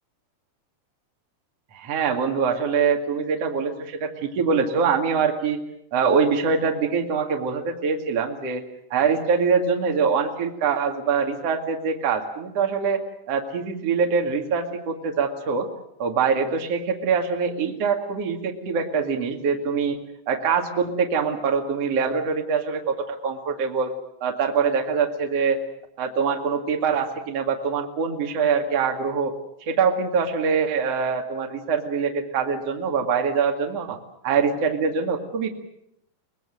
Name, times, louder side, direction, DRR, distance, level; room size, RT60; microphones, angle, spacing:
voice 1, 1.7-5.6 5.9-8.6 8.9-15.7 16.0-20.0 20.3-23.9 24.2-25.6 26.0-29.3 29.7-34.0 34.2-35.5, right 5 dB, 45° right, 3 dB, 2.6 m, -24 dB
24.5 x 20.0 x 7.9 m, 0.78 s
omnidirectional pair, 5.3 m